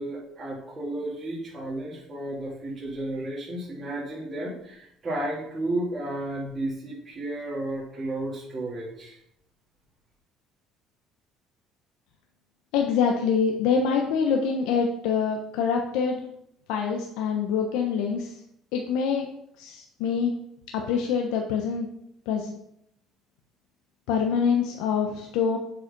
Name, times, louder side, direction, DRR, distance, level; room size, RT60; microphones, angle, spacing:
voice 1, 0.0-9.2, right 1 dB, 35° right, -8 dB, 3.1 m, -33 dB
voice 2, 12.7-16.2 16.7-18.4 18.7-19.3 19.6-20.3 20.7-21.9 22.3-22.6 24.1-25.6, left 6 dB, 85° left, 2 dB, 0.9 m, -25 dB
7.3 x 5.0 x 5.3 m, 0.74 s
supercardioid pair, 95°, 0 cm